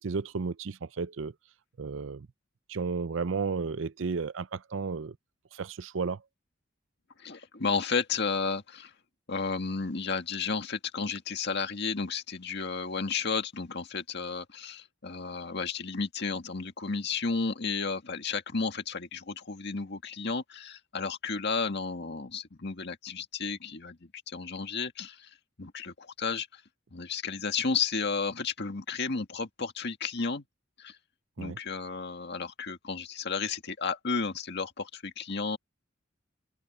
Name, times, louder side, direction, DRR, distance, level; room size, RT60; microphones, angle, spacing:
voice 1, 0.0-1.3 1.8-2.3 2.7-5.2 5.5-6.2 31.4-31.6, right 4 dB, 70° right, 0.5 m, -33 dB
voice 2, 7.2-8.9 9.3-25.3 25.6-26.6 26.9-30.4 30.8-31.0 31.4-35.6, left 4 dB, 60° left, 1.9 m, -33 dB
open air
head